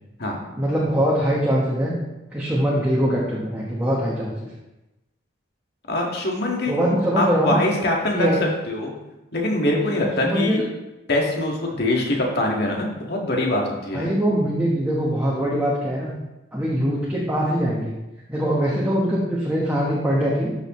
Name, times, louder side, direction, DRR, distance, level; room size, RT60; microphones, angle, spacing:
voice 1, 0.6-1.9 2.3-4.3 6.7-7.6 8.1-8.4 10.2-10.6 13.9-16.1 16.5-17.9 18.3-20.5, equal, 10° right, -6 dB, 1.2 m, -22 dB
voice 2, 5.9-8.3 8.7-8.9 9.3-10.6 11.1-14.1, left 1 dB, 55° left, -1 dB, 1.9 m, -23 dB
12.5 x 6.4 x 3.2 m, 1.0 s
head